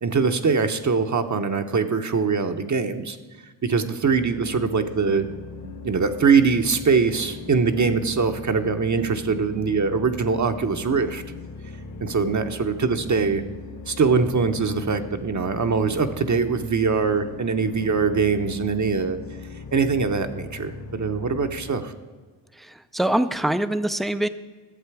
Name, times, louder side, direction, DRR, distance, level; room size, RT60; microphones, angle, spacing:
voice 1, 0.0-3.2 3.6-5.3 5.6-11.2 12.0-13.4 13.9-19.2 19.7-21.9, right 5 dB, 35° right, 7 dB, 0.7 m, -22 dB
near church background noise, 4.0-21.7, left 3 dB, 35° left, 1.0 m, -39 dB
voice 2, 22.6-24.3, right 1 dB, ahead, 12 dB, 0.3 m, -24 dB
11.5 x 7.4 x 4.7 m, 1.3 s
cardioid pair, 65°, 48 cm